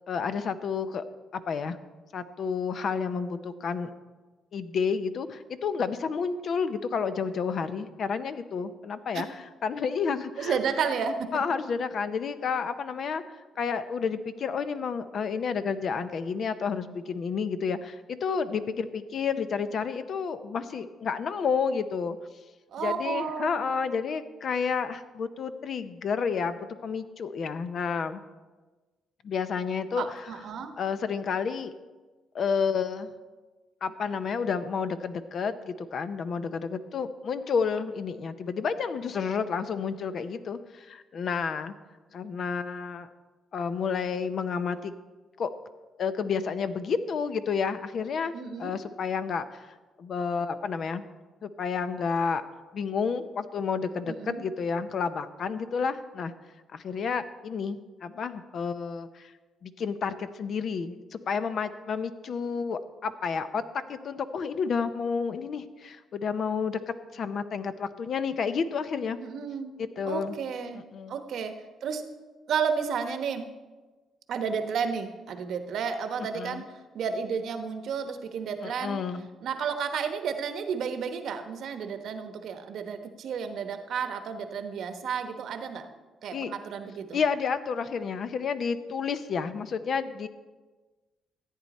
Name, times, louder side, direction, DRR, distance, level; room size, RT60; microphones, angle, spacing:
voice 1, 0.1-1.0 1.3-1.8 2.1-3.9 4.5-9.3 9.6-10.6 11.3-13.2 13.6-22.2 22.8-28.2 29.2-30.0 30.8-31.7 32.3-33.1 33.8-41.7 42.1-43.1 43.5-44.9 45.4-45.5 46.0-48.3 48.6-49.7 50.0-51.0 51.4-52.4 52.7-56.3 56.7-59.3 59.6-69.2 69.8-70.3 70.7-71.1 76.2-76.6 78.6-79.3 86.3-86.5 87.1-90.3, left 6 dB, 60° left, 11 dB, 0.7 m, -30 dB
voice 2, 10.4-11.3 22.7-23.6 30.0-30.7 48.3-48.7 54.1-54.4 69.2-69.8 70.1-72.1 72.5-73.4 74.3-79.0 79.4-85.9 86.2-87.2, right 6 dB, 70° right, 7 dB, 1.0 m, -32 dB
14.0 x 9.1 x 4.2 m, 1.3 s
cardioid pair, 90°, 0 cm